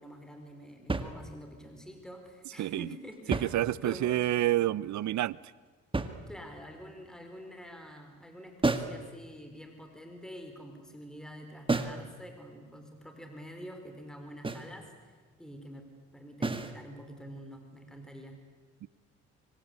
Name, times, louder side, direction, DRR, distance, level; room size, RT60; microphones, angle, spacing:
voice 1, 0.0-3.5 3.8-4.2 6.3-15.8 16.1-18.4, equal, ahead, 4.6 m, -47 dB
sound 1, 0.9-1.7 3.1-4.2 5.9-6.7 8.6-9.1 11.7-12.1 14.4-14.8 16.4-16.8, right 3 dB, 15° right, 1.9 m, -32 dB
voice 2, 3.3-5.4 18.8-18.9, right 14 dB, 70° right, 0.7 m, -28 dB
25.0 x 25.0 x 8.4 m
cardioid pair, 90°, 30 cm